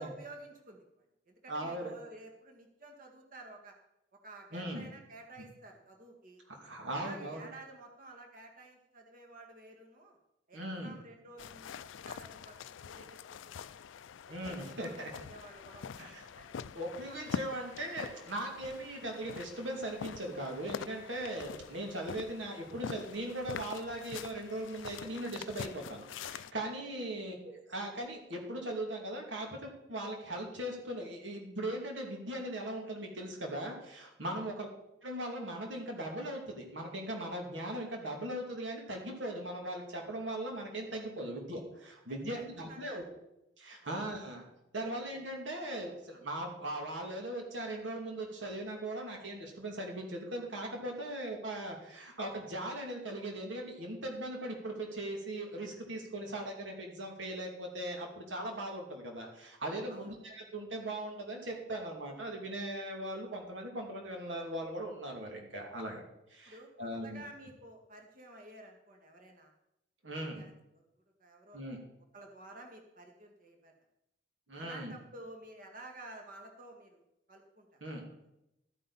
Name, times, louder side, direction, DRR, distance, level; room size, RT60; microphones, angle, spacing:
voice 1, 0.0-3.7 4.2-6.4 6.9-10.2 10.5-11.7 12.1-13.7 14.2-16.5 17.8-17.9 21.8-22.0 27.0-27.1 34.2-34.4 42.1-42.4 42.7-43.0 43.8-44.0 59.9-60.2 66.5-69.5 70.1-70.8 71.2-71.8 72.1-73.7 74.5-77.0 77.3-77.8, right 2 dB, 45° right, 3 dB, 1.8 m, -52 dB
voice 2, 1.5-1.9 4.5-4.9 5.4-5.5 6.5-7.5 10.5-11.0 14.3-15.1 16.0-16.2 16.7-34.7 35.0-43.0 43.6-44.5 44.7-66.0 66.3-67.2 70.0-70.5 71.5-71.8 74.5-75.0 77.8-78.0, right 1 dB, 75° right, 1 dB, 2.7 m, -39 dB
sound 1, 11.4-26.5, left 6 dB, 85° left, 0.4 m, -45 dB
13.5 x 9.2 x 4.2 m, 0.86 s
head